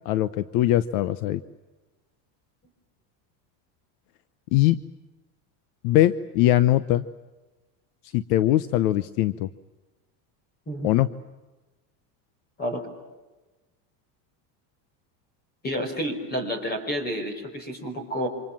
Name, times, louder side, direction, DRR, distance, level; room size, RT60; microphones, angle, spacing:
voice 1, 0.0-1.4 4.5-4.8 5.8-7.0 8.1-9.5 10.8-11.1, left 14 dB, 65° left, 15 dB, 1.0 m, -21 dB
voice 2, 10.7-11.0 12.6-12.9 15.6-18.3, equal, 20° left, 8 dB, 5.2 m, -30 dB
28.0 x 26.0 x 7.3 m, 1.2 s
cardioid pair, 165°, 46 cm